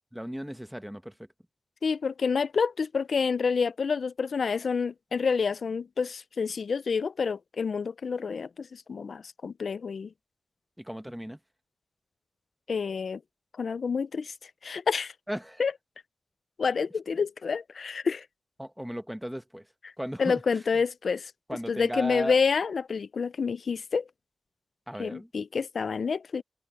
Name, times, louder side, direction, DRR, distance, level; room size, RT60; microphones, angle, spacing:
voice 1, 0.1-1.1 10.8-11.4 15.3-15.6 18.6-19.7 20.0-20.6 21.5-22.4 24.9-25.3, equal, 5° right, 1.1 m, -36 dB
voice 2, 1.8-10.1 12.7-13.2 13.6-15.1 15.6-15.7 16.6-18.3 19.8-19.9 20.2-21.3 21.7-24.0 25.0-26.4, left 5 dB, 75° left, 0.4 m, -28 dB
wide cardioid pair, 85°, 0 cm